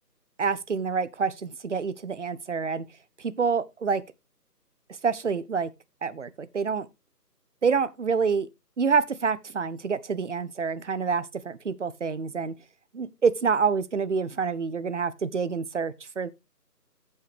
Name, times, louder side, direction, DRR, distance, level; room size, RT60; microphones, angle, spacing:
voice 1, 0.4-2.8 3.2-4.0 5.0-5.7 6.0-6.9 7.6-8.5 8.8-12.5 12.9-16.3, right 5 dB, 50° right, 0.7 m, -27 dB
15.0 x 5.6 x 3.2 m
figure-of-eight pair, 160°, 49 cm